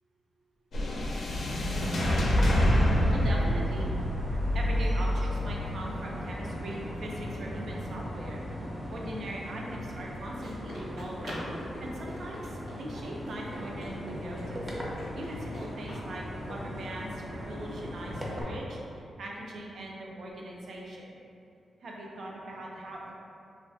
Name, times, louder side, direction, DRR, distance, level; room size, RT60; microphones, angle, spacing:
sound 1, 0.7-9.1, equal, 65° left, 0.4 m, -28 dB
sound 2, 2.2-18.4, equal, 15° right, 0.5 m, -40 dB
voice 1, 3.1-3.9 4.5-8.4 8.9-14.6 15.1-21.1 21.8-23.1, right 1 dB, 70° right, -2 dB, 0.4 m, -40 dB
Run, 10.1-16.0, equal, 90° right, 1.1 m, -43 dB
3.1 x 2.3 x 2.5 m, 2.5 s
cardioid pair, 90°, 0 cm